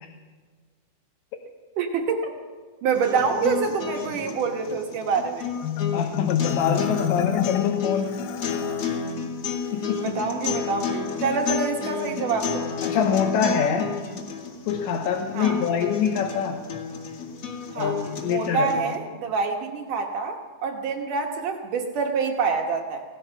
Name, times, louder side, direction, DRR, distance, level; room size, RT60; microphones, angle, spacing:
voice 1, 1.8-2.3 2.8-5.5 10.0-12.7 15.3-15.6 17.7-18.0 18.2-23.0, right 5 dB, 80° right, 2 dB, 1.8 m, -26 dB
sound 1, 2.9-19.0, left 6 dB, 40° left, 2.3 m, -32 dB
Marimba xylophone, 5.6-9.0, left 10 dB, 85° left, 3.5 m, -28 dB
voice 2, 5.9-8.2 9.7-10.2 12.8-13.9 14.7-16.6 17.8-18.7, left 7 dB, 70° left, 1 dB, 3.3 m, -25 dB
26.0 x 17.0 x 5.8 m, 1.5 s
omnidirectional pair, 5.9 m